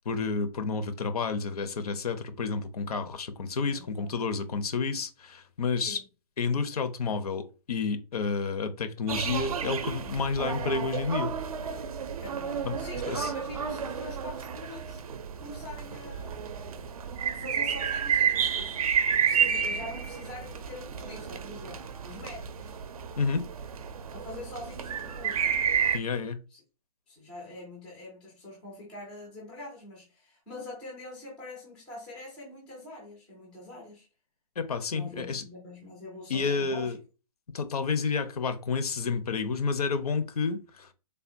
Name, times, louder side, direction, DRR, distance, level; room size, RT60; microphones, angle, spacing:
voice 1, 0.1-6.0 6.4-11.3 12.6-12.8 13.1-13.3 23.2-23.5 25.9-26.4 34.6-35.4 36.3-37.0 37.5-40.9, left 4 dB, 70° left, 0.6 m, -30 dB
voice 2, 3.5-4.1 5.8-6.0 12.2-15.0 15.4-16.4 17.3-22.7 24.1-25.6 26.5-26.6 27.1-34.1 34.9-37.0, left 2 dB, 5° left, 0.3 m, -44 dB
sound 1, 9.1-26.0, right 7 dB, 65° right, 0.4 m, -31 dB
3.4 x 2.1 x 2.5 m
hypercardioid pair, 165°, 20 cm